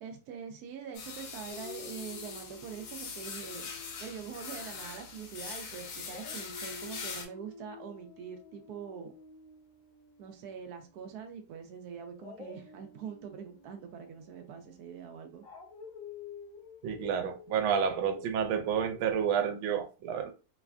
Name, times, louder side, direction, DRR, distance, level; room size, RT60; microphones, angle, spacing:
voice 1, 0.0-9.1 10.2-15.4, right 7 dB, 70° right, 0.9 m, -44 dB
sound 1, 0.9-7.3, left 5 dB, 70° left, 1.2 m, -42 dB
Dog, 1.5-5.7 6.0-11.0 12.1-19.1, left 4 dB, 50° left, 1.2 m, -51 dB
voice 2, 16.8-20.3, right 7 dB, 85° right, 1.3 m, -30 dB
3.3 x 2.1 x 2.4 m
omnidirectional pair, 2.1 m